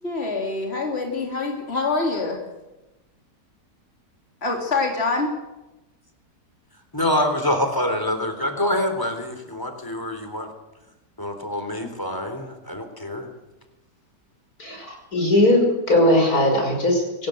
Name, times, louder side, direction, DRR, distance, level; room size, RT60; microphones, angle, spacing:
voice 1, 0.0-2.4 4.4-5.3, left 3 dB, 35° left, 1 dB, 3.6 m, -25 dB
voice 2, 6.9-10.5 11.2-13.3, left 1 dB, 10° left, 6 dB, 3.8 m, -25 dB
voice 3, 14.6-17.3, left 1 dB, 60° left, 2 dB, 6.3 m, -19 dB
25.0 x 17.5 x 8.0 m, 1.0 s
omnidirectional pair, 1.8 m